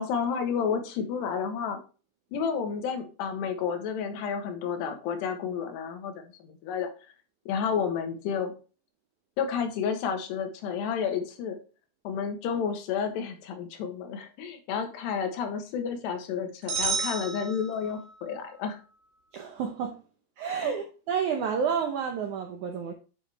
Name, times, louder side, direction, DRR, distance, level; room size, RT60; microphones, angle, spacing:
voice 1, 0.0-1.8 2.3-6.9 7.5-8.5 9.4-11.6 12.0-18.8 20.6-20.8, left 6 dB, 85° left, 3.4 m, -31 dB
sound 1, 16.7-18.2, right 5 dB, 60° right, 4.3 m, -31 dB
voice 2, 19.3-20.0 20.4-22.9, right 7 dB, 80° right, 1.7 m, -30 dB
9.6 x 5.0 x 3.4 m
omnidirectional pair, 4.7 m